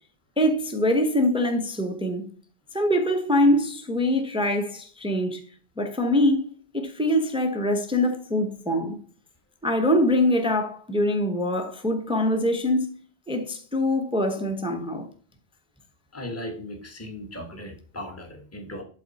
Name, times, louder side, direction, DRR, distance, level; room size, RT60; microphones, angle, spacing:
voice 1, 0.4-2.3 2.7-5.4 5.8-6.4 6.7-9.0 9.6-12.9 13.3-15.1, left 1 dB, 5° right, 0.9 m, -23 dB
voice 2, 16.1-18.8, left 1 dB, 10° left, 1.5 m, -37 dB
12.0 x 4.0 x 4.2 m
omnidirectional pair, 1.2 m